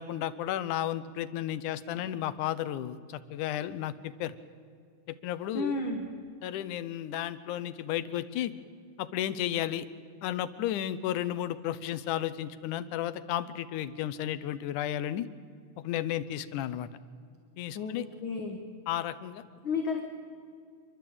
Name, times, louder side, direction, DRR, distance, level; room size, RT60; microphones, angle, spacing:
voice 1, 0.0-4.4 5.1-5.8 6.4-8.5 9.0-9.9 10.2-15.3 15.8-16.9 17.6-18.1 18.9-19.4, left 12 dB, 85° left, 13 dB, 2.3 m, -33 dB
voice 2, 5.5-6.1 17.7-18.6 19.6-20.0, left 3 dB, 50° left, 3 dB, 1.9 m, -32 dB
28.0 x 12.0 x 8.7 m, 2.3 s
omnidirectional pair, 3.5 m